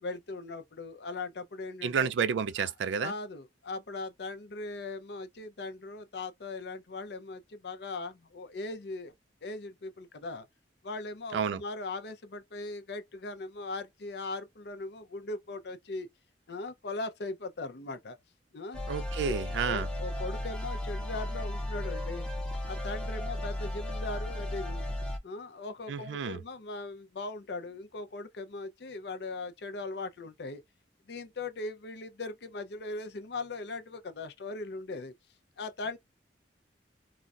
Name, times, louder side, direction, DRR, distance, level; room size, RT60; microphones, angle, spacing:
voice 1, 0.0-2.1 2.6-2.7 3.0-9.1 9.4-10.4 10.8-16.1 16.5-18.2 18.5-18.8 19.1-19.3 19.6-22.3 22.6-24.9 25.2-30.6 31.1-35.1 35.6-36.0, left 3 dB, 65° left, 0.6 m, -39 dB
voice 2, 1.8-3.1 11.3-11.6 18.9-19.9 25.9-26.4, right 6 dB, 85° right, 0.3 m, -30 dB
sound 1, 18.7-25.2, left 1 dB, 5° left, 0.6 m, -35 dB
3.9 x 2.1 x 2.3 m
head